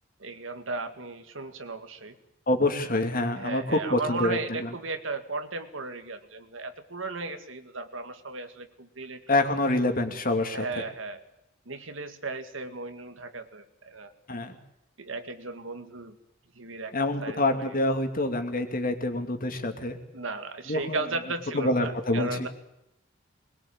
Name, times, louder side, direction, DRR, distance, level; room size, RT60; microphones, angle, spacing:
voice 1, 0.2-2.2 3.4-9.2 10.5-11.2 11.7-14.1 15.0-16.2 16.5-17.0 17.2-17.8 20.1-22.5, right 3 dB, 85° right, 8 dB, 2.1 m, -35 dB
voice 2, 2.5-4.7 9.3-10.6 14.3-14.6 16.9-20.0 20.7-21.0 21.5-22.5, left 2 dB, 45° left, 5 dB, 2.7 m, -26 dB
21.5 x 21.5 x 8.7 m, 0.85 s
head